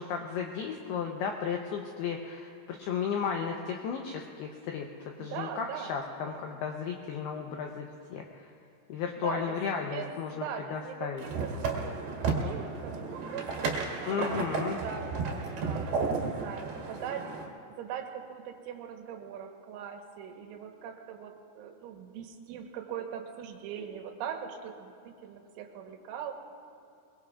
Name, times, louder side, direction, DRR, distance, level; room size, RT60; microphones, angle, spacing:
voice 1, 0.0-8.5 8.9-11.2 14.1-14.8, left 6 dB, 90° left, 2 dB, 2.3 m, -34 dB
voice 2, 5.2-6.0 6.2-6.5 9.2-9.6 9.8-15.1 15.6-15.9 16.2-17.3 17.8-26.3, right 8 dB, 80° right, 3 dB, 3.5 m, -41 dB
sound 1, 11.2-17.5, right 4 dB, 60° right, 3.3 m, -33 dB
22.5 x 22.5 x 2.4 m, 2.6 s
omnidirectional pair, 5.7 m